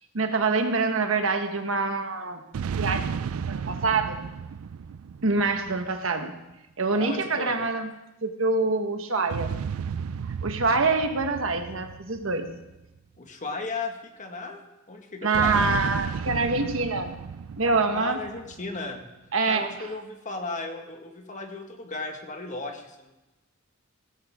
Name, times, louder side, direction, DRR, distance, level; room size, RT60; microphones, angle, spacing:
voice 1, 0.1-2.4 2.8-3.1 3.4-4.2 5.2-6.4 6.8-7.9 8.2-9.6 10.4-12.5 15.2-17.2 17.6-18.2 19.3-19.9, right 3 dB, 70° right, 6 dB, 1.3 m, -25 dB
sound 1, 2.5-6.2 9.3-13.0 15.3-18.8, right 6 dB, 90° right, 0.4 m, -33 dB
voice 2, 6.9-7.6 13.2-14.6 14.9-15.6 17.9-19.0 19.5-23.1, left 3 dB, 35° left, 4 dB, 1.7 m, -35 dB
17.5 x 14.5 x 3.7 m, 0.99 s
head